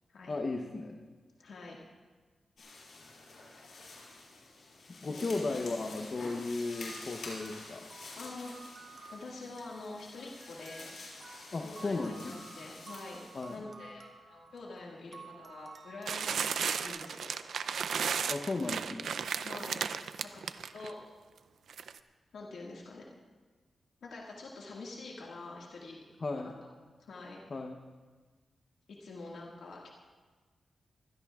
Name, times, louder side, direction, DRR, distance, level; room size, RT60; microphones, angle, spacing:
voice 1, 0.3-1.0 5.0-7.9 11.5-12.4 13.3-13.6 18.3-19.2 26.2-26.5 27.5-27.8, left 3 dB, 40° left, 4 dB, 0.9 m, -35 dB
voice 2, 1.4-1.8 5.1-5.8 8.2-8.7 9.1-11.0 11.6-13.2 13.5-16.4 16.8-17.4 19.4-19.8 20.2-21.0 22.3-23.0 24.0-26.0 26.4-26.5 27.0-27.5 29.0-29.9, left 3 dB, 85° left, -3 dB, 1.9 m, -46 dB
sound 1, 2.6-13.6, left 3 dB, 70° left, 5.5 m, -48 dB
sound 2, 6.6-16.9, right 4 dB, 55° right, 2.1 m, -54 dB
sound 3, 16.1-20.9 21.7-22.0, right 7 dB, 85° right, 0.5 m, -34 dB
25.0 x 16.0 x 2.4 m, 1.4 s
wide cardioid pair, 125°, 0 cm